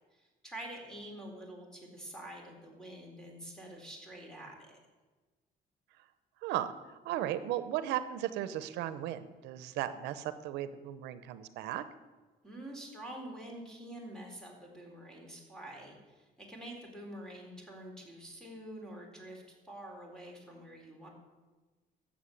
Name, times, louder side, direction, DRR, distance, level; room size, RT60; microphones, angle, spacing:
voice 1, 0.1-4.8 12.4-21.1, right 1 dB, 5° left, 0 dB, 4.0 m, -47 dB
voice 2, 6.4-6.7 7.0-11.8, right 12 dB, 90° right, 13 dB, 0.8 m, -36 dB
12.5 x 7.5 x 8.6 m, 1.3 s
cardioid pair, 110°, 17 cm